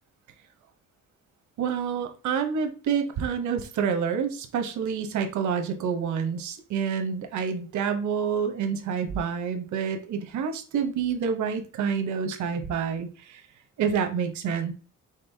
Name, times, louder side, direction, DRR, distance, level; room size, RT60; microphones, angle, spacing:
voice 1, 1.6-13.4 13.8-14.7, right 6 dB, 85° right, 6 dB, 0.9 m, -28 dB
5.3 x 3.7 x 2.7 m, 0.36 s
cardioid pair, 115°, 29 cm